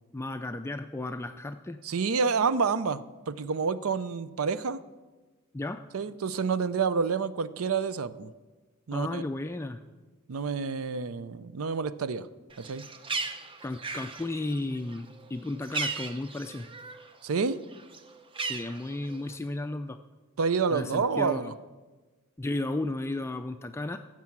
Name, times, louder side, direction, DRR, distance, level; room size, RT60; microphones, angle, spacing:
voice 1, 0.1-1.8 5.5-5.8 8.9-9.8 13.6-16.7 18.4-20.0 20.7-21.5 22.4-24.0, left 2 dB, 10° left, 8 dB, 0.3 m, -34 dB
voice 2, 1.8-4.8 5.9-8.3 8.9-9.2 10.3-12.3 12.6-12.8 17.2-17.6 20.4-21.5, right 5 dB, 85° right, 15 dB, 0.5 m, -28 dB
Bird, 12.5-17.1 17.4-19.3, right 3 dB, 25° right, 0.7 m, -37 dB
15.5 x 7.5 x 6.0 m, 1.3 s
head